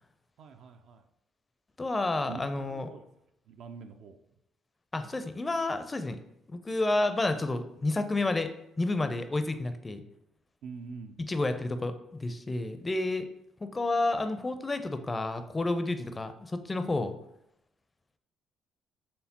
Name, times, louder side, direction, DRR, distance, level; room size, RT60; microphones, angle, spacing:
voice 1, 0.4-1.0 2.3-3.1 3.5-4.2 10.6-11.2, right 5 dB, 65° right, 6 dB, 0.3 m, -45 dB
voice 2, 1.8-2.9 4.9-6.2 6.5-8.5 8.8-10.0 11.3-13.3 13.6-17.1, left 2 dB, 25° left, 9 dB, 0.4 m, -30 dB
4.3 x 3.3 x 2.8 m, 0.79 s
hypercardioid pair, 50°, 0 cm